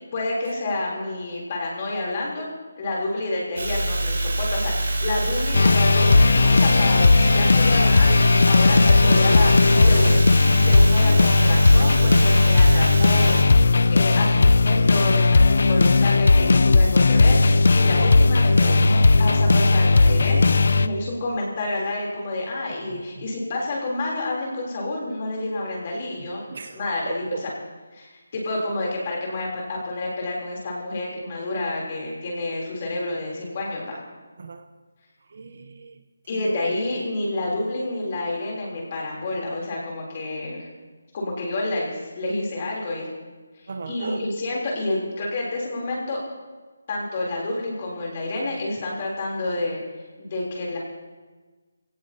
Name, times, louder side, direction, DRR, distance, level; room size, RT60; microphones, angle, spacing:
voice 1, 0.1-2.5 2.8-9.5 9.9-10.2 10.7-13.5 13.9-26.4 26.7-27.2 27.9-34.0 36.3-40.7 41.1-43.1 43.5-46.2 46.9-49.8 50.2-50.8, left 2 dB, 25° left, -3 dB, 3.5 m, -29 dB
sound 1, 3.6-13.4, right 1 dB, 80° right, 3.9 m, -25 dB
sound 2, 5.5-20.9, left 3 dB, 55° left, 0.5 m, -16 dB
voice 2, 8.0-8.4 9.2-10.3 11.1-11.4 15.9-16.0 18.5-19.0 20.9-21.0 22.5-23.3 26.2-27.5 34.4-34.7 35.2-36.0 36.3-37.1 37.5-37.7 43.7-44.3 48.4-48.6, right 4 dB, 40° right, 8 dB, 0.8 m, -36 dB
22.0 x 17.0 x 2.9 m, 1.3 s
hypercardioid pair, 175°, 0 cm